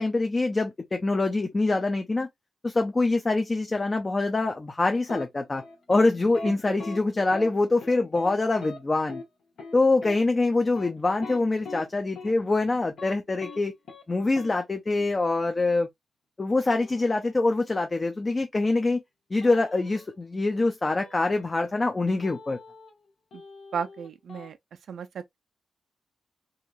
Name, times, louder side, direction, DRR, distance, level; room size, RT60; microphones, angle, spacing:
voice 1, 0.0-2.3 2.6-5.6 5.9-9.2 9.7-13.7 14.1-15.9 16.4-19.0 19.3-22.6, left 2 dB, 35° left, 0.5 m, -25 dB
sound 1, 5.1-5.2 5.6-6.1 6.3-6.5 6.8-7.0 7.3-7.5 7.8-8.3 8.6-8.8 9.1-9.2 9.6-9.7 10.0-10.2 10.6-11.8 12.2-12.3 12.7-13.1 13.4-13.6 13.9-14.0 14.4-14.5 16.7-17.5 19.4-20.1 21.0-21.8 22.2-23.0 23.3-24.5, left 3 dB, 75° left, 1.1 m, -42 dB
voice 2, 6.5-6.8 23.3-23.4 23.7-24.6 24.9-25.4, right 6 dB, 75° right, 0.3 m, -35 dB
2.8 x 2.7 x 2.3 m
supercardioid pair, 40°, 0 cm